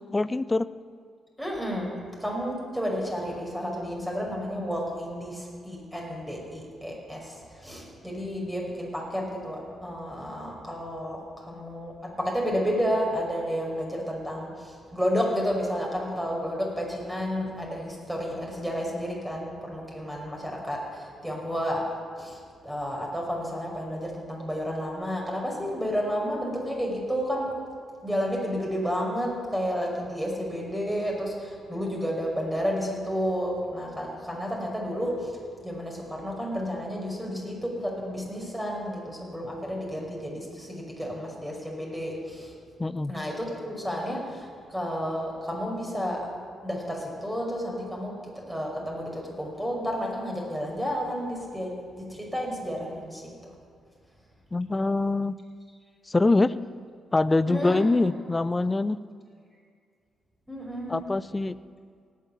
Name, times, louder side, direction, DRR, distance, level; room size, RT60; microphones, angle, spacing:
voice 1, 0.1-0.7 42.8-43.2 54.5-55.4 56.1-56.5 57.1-59.0 60.9-61.6, left 2 dB, 25° left, 17 dB, 0.6 m, -24 dB
voice 2, 1.4-1.9 2.2-21.8 22.2-27.5 28.0-35.3 35.6-42.5 43.1-46.3 46.6-53.3 57.5-57.8 60.5-61.0, equal, 5° right, -2 dB, 5.5 m, -31 dB
17.5 x 8.6 x 8.5 m, 2.1 s
hypercardioid pair, 40°, 0 cm